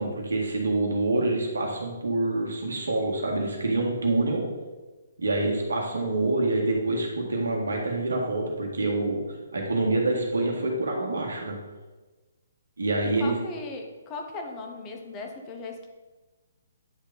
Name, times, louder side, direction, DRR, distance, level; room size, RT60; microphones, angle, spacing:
voice 1, 0.0-4.4 5.2-9.2 9.5-11.6 12.8-13.3, right 2 dB, 85° right, -1 dB, 1.7 m, -26 dB
voice 2, 13.2-15.9, left 3 dB, 25° left, 3 dB, 1.0 m, -37 dB
9.9 x 3.5 x 4.0 m, 1.2 s
hypercardioid pair, 145°, 0 cm